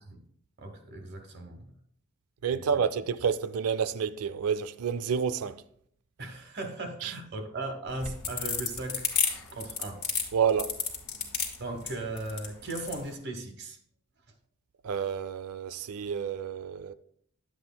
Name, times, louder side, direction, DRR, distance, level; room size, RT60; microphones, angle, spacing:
voice 1, 0.6-1.7 2.5-2.6 6.2-9.1 9.5-10.0 11.6-13.8, right 2 dB, 50° right, 1.1 m, -37 dB
voice 2, 2.4-5.6 7.0-7.1 10.3-10.7 14.8-16.9, right 7 dB, 85° right, 0.4 m, -29 dB
sound 1, 7.9-13.0, left 5 dB, 85° left, 1.6 m, -31 dB
10.0 x 7.7 x 2.2 m
head